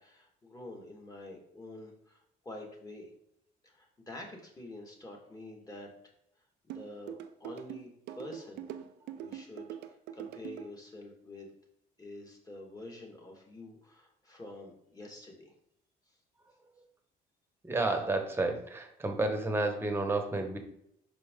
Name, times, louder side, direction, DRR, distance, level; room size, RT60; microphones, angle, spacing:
voice 1, 0.0-3.1 3.6-5.9 6.6-7.9 8.1-8.7 9.1-9.7 10.1-11.5 12.0-15.5, left 1 dB, 20° left, 0 dB, 1.8 m, -47 dB
sound 1, 6.7-10.7, right 10 dB, 85° right, 0.5 m, -42 dB
voice 2, 17.6-20.6, right 2 dB, 15° right, 4 dB, 1.1 m, -31 dB
6.1 x 4.6 x 3.7 m, 0.76 s
cardioid pair, 110°, 17 cm